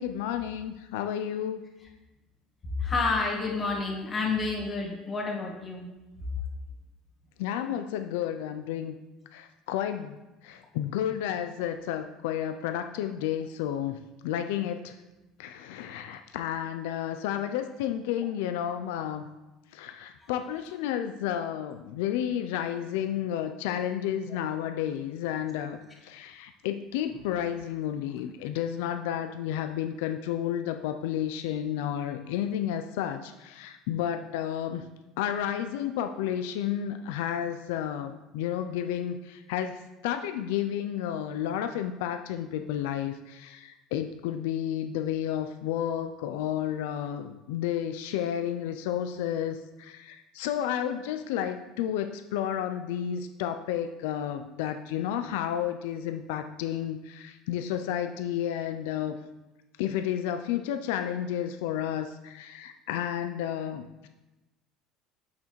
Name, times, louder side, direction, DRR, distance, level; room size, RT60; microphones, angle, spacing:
voice 1, 0.0-1.6 7.4-8.9 9.3-10.2 10.4-15.0 15.4-19.3 19.7-34.9 35.2-59.2 59.8-64.1, left 10 dB, 90° left, 7 dB, 0.3 m, -31 dB
voice 2, 2.8-5.9 24.3-24.4, left 4 dB, 30° left, -2 dB, 1.6 m, -29 dB
6.5 x 5.7 x 3.1 m, 1.0 s
supercardioid pair, 120°, 0 cm